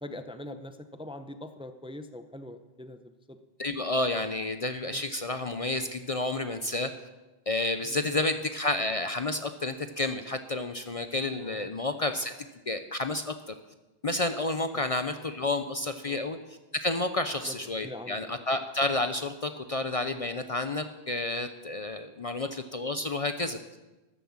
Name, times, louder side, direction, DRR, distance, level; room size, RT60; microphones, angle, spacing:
voice 1, 0.0-3.4 4.8-5.1 7.8-8.2 11.4-11.7 14.7-14.8 16.0-16.2 17.5-17.6 17.8-18.4, left 1 dB, 5° right, 9 dB, 0.7 m, -43 dB
voice 2, 3.6-6.9 7.5-12.3 12.7-13.3 14.0-16.4 16.8-23.6, left 2 dB, 40° left, 8 dB, 0.7 m, -30 dB
13.5 x 11.0 x 7.2 m, 1.1 s
omnidirectional pair, 1.0 m